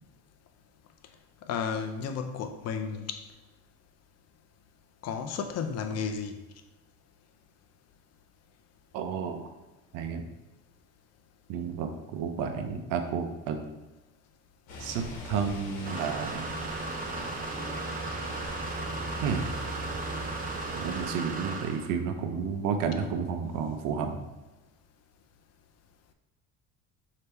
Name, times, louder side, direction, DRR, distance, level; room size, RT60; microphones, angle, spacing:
voice 1, 1.5-3.2 5.0-6.3, left 6 dB, 50° left, 7 dB, 0.5 m, -33 dB
voice 2, 8.9-9.5 9.9-10.3 11.5-13.6 14.8-16.5 19.2-19.4 20.7-24.2, right 6 dB, 75° right, 6 dB, 0.7 m, -31 dB
sound 1, 14.7-21.1, equal, 85° left, 1.1 m, -40 dB
sound 2, 15.8-21.9, right 3 dB, 25° right, 0.6 m, -36 dB
3.3 x 2.9 x 4.4 m, 1.1 s
supercardioid pair, 100°, 33 cm